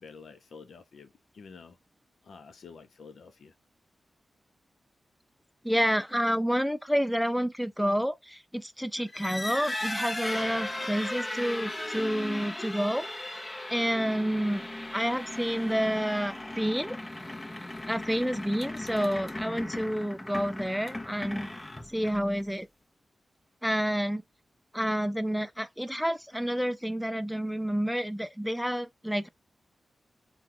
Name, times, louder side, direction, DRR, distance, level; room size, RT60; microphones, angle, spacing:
voice 1, 0.0-1.8 2.2-3.5, left 5 dB, 75° left, 0.6 m, -49 dB
voice 2, 5.6-14.7 14.9-17.0 17.9-21.5 21.9-22.7 23.6-24.2 24.7-29.3, equal, ahead, 0.3 m, -29 dB
sound 1, 9.0-22.4, left 1 dB, 25° left, 0.9 m, -37 dB
3.6 x 2.3 x 2.9 m
cardioid pair, 60°, 0 cm